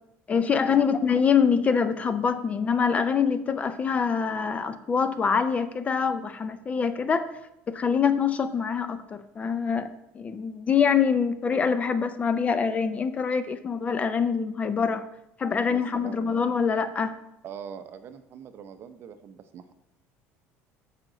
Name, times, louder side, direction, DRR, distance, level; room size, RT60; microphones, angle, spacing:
voice 1, 0.3-7.3 7.7-15.1 15.4-17.1, left 6 dB, 25° left, 12 dB, 0.4 m, -25 dB
voice 2, 15.7-16.3 17.4-19.7, right 7 dB, 40° right, 10 dB, 0.7 m, -42 dB
14.0 x 5.0 x 3.9 m, 0.85 s
cardioid pair, 155°, 6 cm